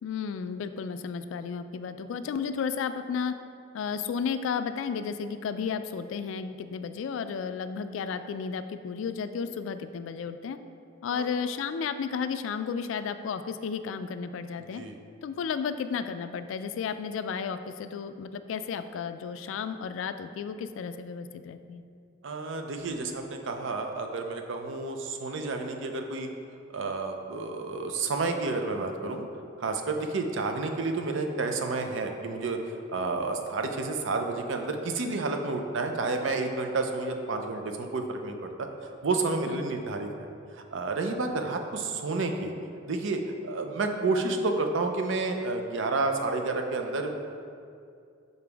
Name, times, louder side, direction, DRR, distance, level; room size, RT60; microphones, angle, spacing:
voice 1, 0.0-3.4 3.7-10.6 11.0-14.8 15.2-21.8 39.5-39.7, left 6 dB, 75° left, 11 dB, 0.3 m, -33 dB
voice 2, 22.2-26.3 26.7-29.3 29.6-40.1 40.5-42.5 42.9-47.1, right 3 dB, 70° right, 4 dB, 0.5 m, -30 dB
6.8 x 4.0 x 3.4 m, 2.4 s
head